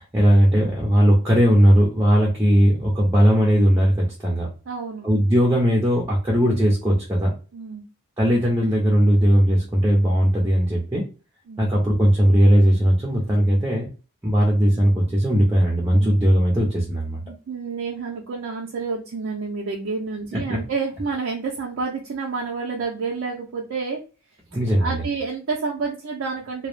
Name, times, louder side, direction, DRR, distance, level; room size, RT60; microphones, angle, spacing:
voice 1, 0.0-4.5 5.0-7.3 8.2-11.0 11.6-13.9 14.2-17.2 20.5-20.6 24.5-25.0, equal, 10° right, -3 dB, 0.5 m, -18 dB
voice 2, 4.7-5.1 7.5-7.8 11.5-11.7 15.9-16.2 17.2-24.0 24.8-26.7, right 4 dB, 70° right, -2 dB, 0.5 m, -29 dB
2.2 x 2.0 x 3.1 m, 0.34 s
head